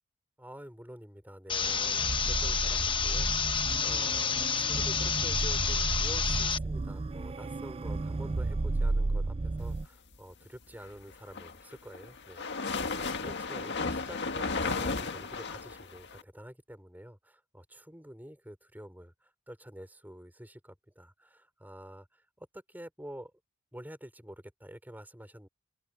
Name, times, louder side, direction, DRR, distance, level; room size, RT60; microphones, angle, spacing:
voice 1, 0.4-23.3 23.7-25.5, equal, 10° right, 4.8 m, -48 dB
sound 1, 1.5-6.6, left 6 dB, 20° left, 0.9 m, -30 dB
sound 2, 1.6-9.9, right 2 dB, 25° right, 0.4 m, -33 dB
sound 3, 11.1-16.2, left 4 dB, 50° left, 1.8 m, -34 dB
open air
head